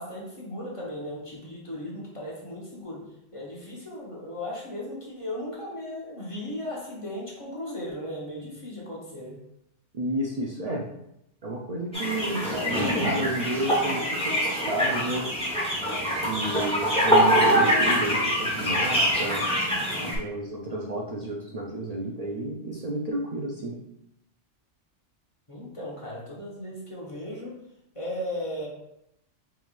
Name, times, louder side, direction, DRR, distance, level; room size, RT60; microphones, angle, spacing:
voice 1, 0.0-9.4 25.5-27.6 27.9-28.7, left 1 dB, 30° left, -5 dB, 1.0 m, -36 dB
voice 2, 9.9-10.8 11.4-15.3 16.2-19.4 20.0-23.8, right 1 dB, 50° right, -2 dB, 0.4 m, -31 dB
sound 1, 11.9-20.2, equal, 5° left, 1.0 m, -24 dB
4.6 x 3.5 x 2.4 m, 0.81 s
omnidirectional pair, 1.2 m